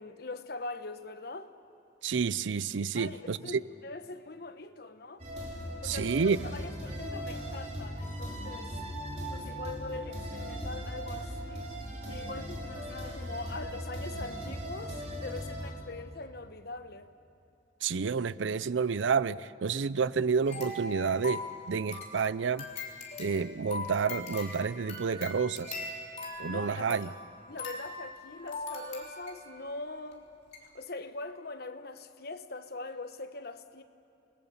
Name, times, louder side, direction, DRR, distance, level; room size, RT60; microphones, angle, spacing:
voice 1, 0.0-1.5 2.9-5.2 5.8-8.7 9.3-11.7 12.1-17.1 26.4-27.2 27.5-30.3 30.6-33.8, left 3 dB, 55° left, 1.1 m, -42 dB
voice 2, 2.0-3.6 5.8-6.4 17.8-22.7 23.2-25.8 26.4-27.1, right 5 dB, 85° right, 0.5 m, -29 dB
sound 1, 5.2-15.7, equal, 35° right, 4.3 m, -38 dB
sound 2, 20.5-29.6 30.1-30.2 30.5-30.7, left 2 dB, 40° left, 3.8 m, -41 dB
28.0 x 20.0 x 7.2 m
head